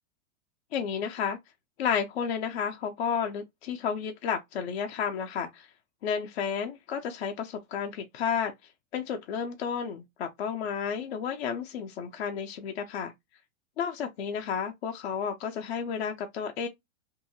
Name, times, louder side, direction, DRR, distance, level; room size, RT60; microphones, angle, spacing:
voice 1, 0.7-1.4 1.8-5.7 6.0-8.5 8.9-13.1 13.8-16.7, left 7 dB, 50° left, 0.5 m, -32 dB
2.7 x 2.6 x 2.6 m
supercardioid pair, 155°, 40 cm